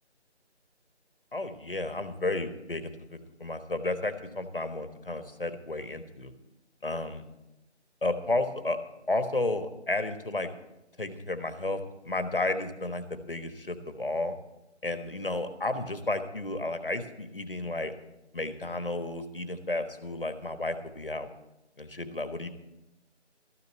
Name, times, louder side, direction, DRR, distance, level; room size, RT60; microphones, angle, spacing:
voice 1, 1.3-6.3 6.8-7.2 8.0-8.8 9.1-10.5 11.0-14.4 14.8-17.9 18.3-21.3 21.8-22.5, left 2 dB, 50° left, 10 dB, 1.2 m, -32 dB
13.0 x 6.6 x 8.4 m, 0.91 s
figure-of-eight pair, 175°, 35 cm